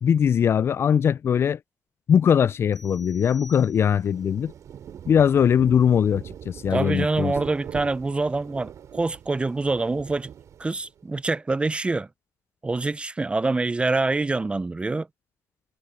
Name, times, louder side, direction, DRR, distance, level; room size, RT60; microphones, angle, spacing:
voice 1, 0.0-1.6 2.1-4.5 5.1-7.3, left 8 dB, 40° left, 0.3 m, -21 dB
sound 1, 2.7-4.2, equal, 5° left, 3.7 m, -49 dB
Rain, 3.8-11.0, right 9 dB, 50° right, 4.0 m, -42 dB
voice 2, 6.7-10.3 10.6-12.1 12.6-15.1, right 3 dB, 15° right, 0.6 m, -25 dB
supercardioid pair, 85°, 7 cm